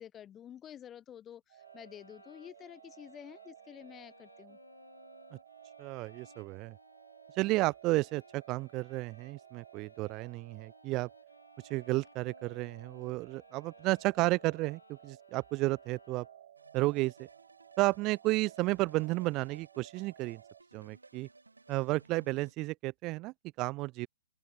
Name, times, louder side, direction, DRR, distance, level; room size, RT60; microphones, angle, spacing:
voice 1, 0.0-4.6, left 10 dB, 20° left, 0.7 m, -50 dB
sound 1, 1.5-20.6, right 12 dB, 50° right, 5.1 m, -56 dB
sound 2, 1.6-16.7, left 3 dB, 80° left, 5.7 m, -62 dB
voice 2, 5.8-6.8 7.4-11.1 11.7-16.3 16.7-17.3 17.8-20.4 20.7-21.3 21.7-24.1, right 21 dB, 30° right, 0.4 m, -32 dB
sound 3, 16.6-22.5, right 3 dB, 85° right, 4.6 m, -59 dB
open air
figure-of-eight pair, 125°, 0 cm